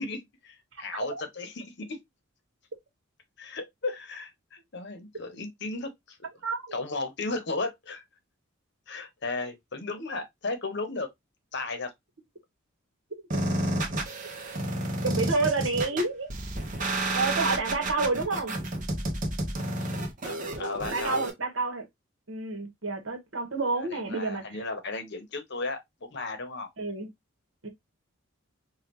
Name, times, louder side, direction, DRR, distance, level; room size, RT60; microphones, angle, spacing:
voice 1, 0.0-2.0 3.4-6.3 6.7-8.0 8.9-11.1 11.5-11.9 20.2-21.2 23.8-26.7, left 3 dB, 50° left, 0.9 m, -35 dB
sound 1, 13.3-21.3, right 1 dB, 40° right, 0.9 m, -30 dB
voice 2, 15.0-16.3 17.1-18.5 20.9-21.8 22.3-24.6 26.8-27.1 27.6-27.7, right 3 dB, 65° right, 1.3 m, -29 dB
5.2 x 2.4 x 2.9 m
head